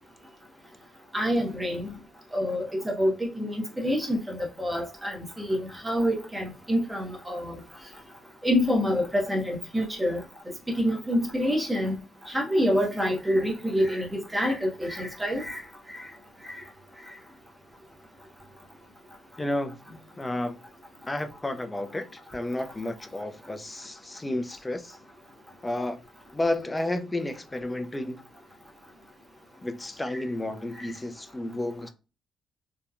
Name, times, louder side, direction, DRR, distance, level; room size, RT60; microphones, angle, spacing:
voice 1, 1.1-1.9 2.3-7.6 8.4-10.2 10.7-12.0 12.2-15.6 15.9-16.0 16.4-16.6 30.1-30.2 30.8-30.9, equal, 10° right, 0.8 m, -27 dB
voice 2, 19.4-19.8 20.2-20.6 21.1-25.0 25.6-26.0 26.3-28.2 29.6-31.9, left 1 dB, 15° left, 0.4 m, -31 dB
2.8 x 2.1 x 2.4 m
cardioid pair, 100°, 0 cm